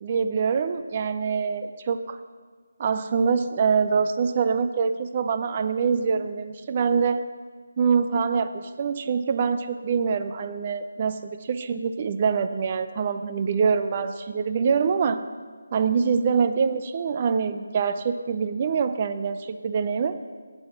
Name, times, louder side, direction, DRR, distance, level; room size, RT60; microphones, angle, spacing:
voice 1, 0.0-2.2 2.8-7.2 7.8-15.2 15.7-20.2, right 6 dB, 35° right, 10 dB, 0.4 m, -25 dB
8.3 x 7.8 x 5.7 m, 1.5 s
figure-of-eight pair, 160°, 0 cm